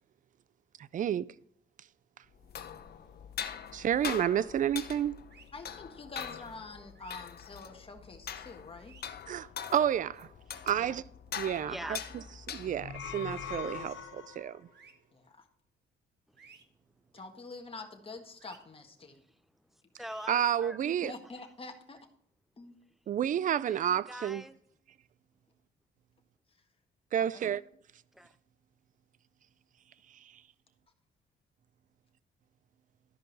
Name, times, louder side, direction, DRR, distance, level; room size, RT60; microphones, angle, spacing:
voice 1, 0.9-1.3 3.7-5.1 9.3-10.3 10.7-11.0 11.4-11.7 12.5-14.6 20.3-21.1 23.1-24.4 27.1-27.6, right 10 dB, 40° right, 0.4 m, -30 dB
sound 1, 2.3-13.0, left 8 dB, 50° left, 0.8 m, -43 dB
sound 2, 5.3-5.5 6.9-7.2 8.7-9.0 11.4-11.6 13.0-13.3 14.7-14.9 16.4-16.6 18.4-18.6 20.0-20.3, right 6 dB, 60° right, 1.2 m, -56 dB
voice 2, 5.5-8.9 10.7-10.9 15.1-15.5 17.1-19.2 20.8-22.0 22.6-22.8 27.2-27.6, left 3 dB, 30° left, 1.6 m, -46 dB
voice 3, 11.7-12.0 16.3-16.6 17.1-17.2 19.1-20.8 23.7-24.6 28.1-28.4, equal, ahead, 0.6 m, -45 dB
sound 3, 12.7-14.6, left 6 dB, 80° left, 0.9 m, -41 dB
12.5 x 5.3 x 4.1 m
cardioid pair, 90°, 20 cm